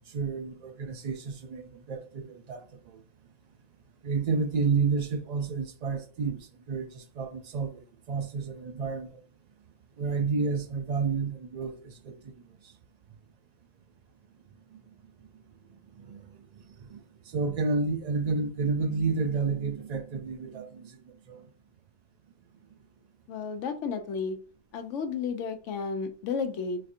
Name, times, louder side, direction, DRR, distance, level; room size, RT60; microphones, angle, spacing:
voice 1, 0.1-3.0 4.0-9.2 10.0-12.7 14.7-14.8 15.2-15.3 15.7-21.4, right 4 dB, 80° right, 0.3 m, -31 dB
voice 2, 23.3-24.4 24.7-26.8, left 5 dB, 80° left, 1.0 m, -32 dB
4.1 x 2.6 x 2.5 m
omnidirectional pair, 1.3 m